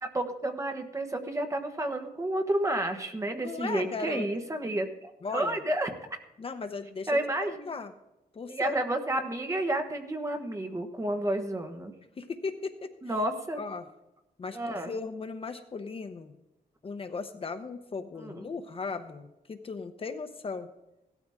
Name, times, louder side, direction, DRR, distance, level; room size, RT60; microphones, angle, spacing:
voice 1, 0.0-5.9 7.1-7.7 8.5-11.9 13.0-13.6 14.5-14.9 18.2-18.5, right 1 dB, 20° right, 5 dB, 1.3 m, -31 dB
voice 2, 3.4-4.3 5.2-5.6 6.4-7.2 7.5-7.9 8.3-8.8 12.2-12.9 13.6-13.9 14.4-14.6 14.9-16.3 16.8-20.7, left 4 dB, 35° left, 8 dB, 0.8 m, -37 dB
17.0 x 13.0 x 3.6 m, 0.92 s
wide cardioid pair, 165°, 16 cm